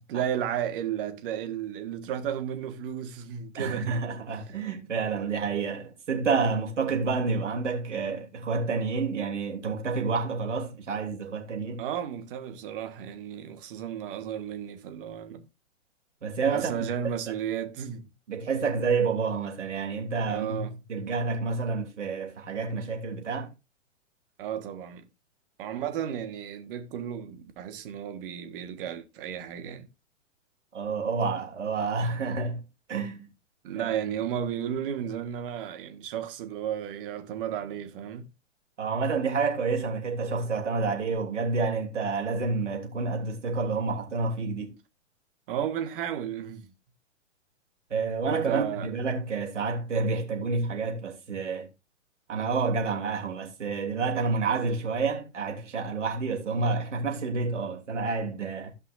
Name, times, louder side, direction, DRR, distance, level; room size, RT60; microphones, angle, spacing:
voice 1, 0.1-4.1 11.8-15.4 16.5-18.1 20.3-20.8 24.4-25.1 25.6-29.9 33.6-38.3 45.5-46.7 48.3-48.9, right 9 dB, 45° right, 1.6 m, -33 dB
voice 2, 3.6-11.8 16.2-16.9 18.3-23.5 30.7-32.6 32.9-33.3 33.8-33.9 38.8-44.7 47.9-51.7 52.3-58.7, right 4 dB, 75° right, 3.1 m, -29 dB
16.0 x 5.6 x 2.6 m
figure-of-eight pair, 115°, 37 cm